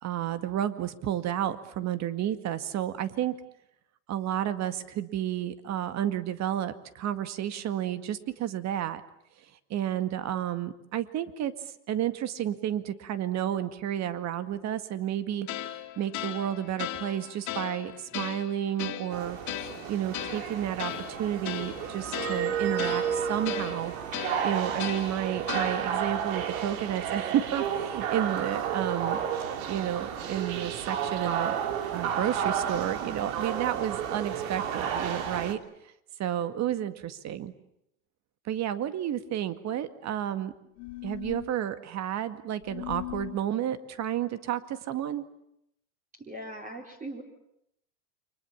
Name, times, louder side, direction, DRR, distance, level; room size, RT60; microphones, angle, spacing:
voice 1, 0.0-3.4 4.1-9.0 9.7-15.5 16.0-19.4 19.9-23.9 24.4-29.2 29.7-31.6 31.9-35.6 36.2-37.5 38.5-40.5 41.0-45.2, right 11 dB, 40° right, 11 dB, 2.1 m, -31 dB
sound 1, 15.5-26.1, left 12 dB, 40° left, 2.8 m, -38 dB
sound 2, 19.1-35.5, right 8 dB, 70° right, 3.0 m, -32 dB
sound 3, 40.8-41.5 42.6-43.4, left 18 dB, 65° left, 2.8 m, -38 dB
voice 2, 46.1-47.2, right 1 dB, 20° right, 1 dB, 3.9 m, -40 dB
29.5 x 24.5 x 7.3 m, 0.78 s
supercardioid pair, 120°, 42 cm